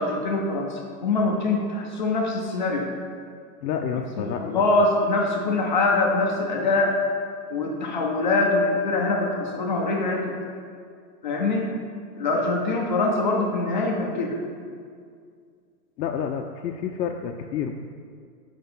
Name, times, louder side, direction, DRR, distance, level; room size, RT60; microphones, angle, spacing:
voice 1, 0.0-2.9 4.2-7.0 7.5-10.4 11.2-11.7 12.2-14.4, left 2 dB, 35° left, 0 dB, 0.4 m, -24 dB
voice 2, 3.6-4.9 16.0-17.7, left 7 dB, 85° left, 3 dB, 0.5 m, -29 dB
4.9 x 3.8 x 5.4 m, 2.2 s
hypercardioid pair, 140°, 49 cm